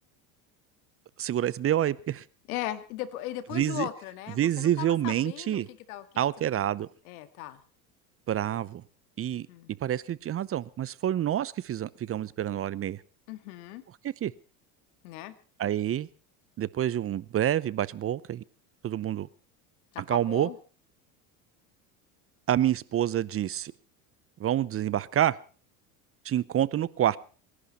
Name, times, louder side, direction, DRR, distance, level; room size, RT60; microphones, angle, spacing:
voice 1, 1.2-2.2 3.5-3.9 4.4-5.7 6.2-6.9 8.3-8.8 9.2-9.5 9.8-13.0 14.0-14.3 15.6-16.1 16.6-18.4 18.8-19.3 20.1-20.5 22.5-23.7 24.4-25.4 26.2-27.2, right 11 dB, 35° right, 0.7 m, -27 dB
voice 2, 2.5-6.1 7.1-7.6 9.5-9.7 13.3-13.8 15.0-15.4 19.9-20.6, left 14 dB, 80° left, 2.1 m, -37 dB
27.5 x 11.5 x 4.1 m
supercardioid pair, 100°, 42 cm